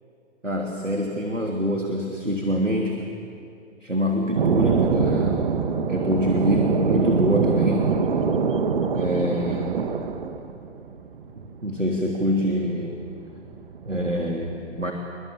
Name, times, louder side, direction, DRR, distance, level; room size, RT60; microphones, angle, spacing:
voice 1, 0.4-3.1 3.8-5.4 5.9-7.9 8.9-9.8 11.6-13.0 13.8-14.9, equal, 90° right, 1 dB, 3.1 m, -25 dB
sound 1, 4.4-14.3, right 5 dB, 45° right, 1.8 m, -24 dB
28.5 x 23.0 x 7.5 m, 2.5 s
figure-of-eight pair, 125°, 37 cm